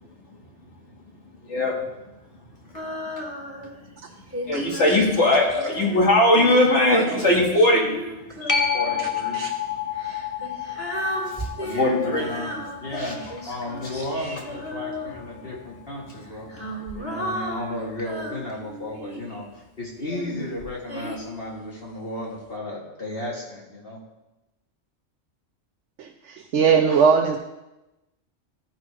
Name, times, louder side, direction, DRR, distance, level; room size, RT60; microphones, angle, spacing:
voice 1, 1.4-1.8 2.7-2.8 3.6-3.7 4.4-8.0 11.2-11.5 11.8-12.3 13.0-13.1, left 1 dB, 90° left, -2 dB, 2.2 m, -20 dB
Female singing, 2.7-3.8 4.3-9.1 9.9-15.5 16.2-19.4 20.1-21.2, equal, 10° right, 1.7 m, -35 dB
voice 2, 8.4-9.4 11.6-16.5 17.0-24.0, left 1 dB, 55° left, -4 dB, 1.9 m, -34 dB
sound 1, 8.5-15.6 21.2-21.3, left 7 dB, 25° left, 0.4 m, -31 dB
voice 3, 26.0-27.4, right 6 dB, 90° right, 3 dB, 1.0 m, -20 dB
13.5 x 5.0 x 4.8 m, 0.98 s
omnidirectional pair, 1.2 m